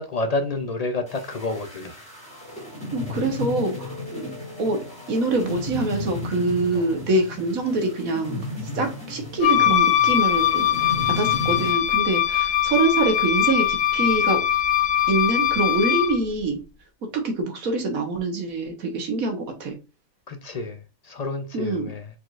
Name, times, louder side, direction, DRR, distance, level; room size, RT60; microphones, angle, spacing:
voice 1, 0.0-2.0 6.8-6.9 20.3-22.1, left 2 dB, 50° left, 0.4 m, -29 dB
sound 1, 1.1-11.7, left 2 dB, 5° left, 2.1 m, -34 dB
voice 2, 2.9-8.4 8.7-14.4 15.1-16.6 17.1-19.8 21.5-21.9, right 2 dB, 85° right, 1.7 m, -25 dB
Wind instrument woodwind instrument, 9.4-16.2, left 11 dB, 70° left, 1.0 m, -21 dB
4.5 x 4.1 x 2.4 m
omnidirectional pair, 1.4 m